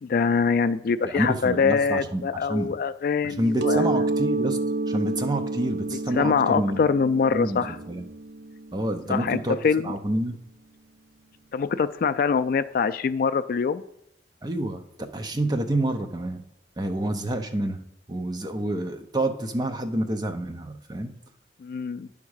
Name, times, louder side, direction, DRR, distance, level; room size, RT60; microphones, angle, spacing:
voice 1, 0.0-4.0 5.9-7.8 9.1-9.4 9.6-10.0 11.5-13.8 21.6-22.1, left 5 dB, 50° left, 12 dB, 0.3 m, -24 dB
voice 2, 1.0-2.7 3.2-4.6 4.9-6.8 7.3-8.1 8.7-9.6 9.8-10.4 14.4-14.8 15.1-16.4 16.8-17.8 18.1-21.1, right 1 dB, 25° right, 6 dB, 0.6 m, -28 dB
Mallet percussion, 3.6-9.1, right 2 dB, 75° right, 0.4 m, -29 dB
9.6 x 3.6 x 6.4 m, 0.78 s
head